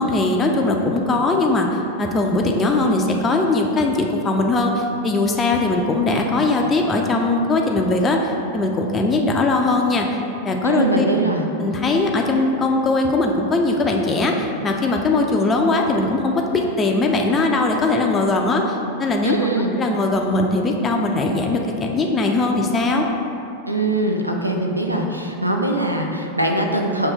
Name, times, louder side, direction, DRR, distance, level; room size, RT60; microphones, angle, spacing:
voice 1, 0.0-1.7 2.0-10.1 10.4-11.1 11.6-19.5 19.7-23.1, left 2 dB, 20° left, 1 dB, 0.3 m, -20 dB
voice 2, 10.6-11.4 19.2-19.7 23.7-27.1, right 2 dB, 85° right, 2 dB, 0.4 m, -22 dB
5.3 x 2.8 x 3.3 m, 2.8 s
figure-of-eight pair, 90°, 0 cm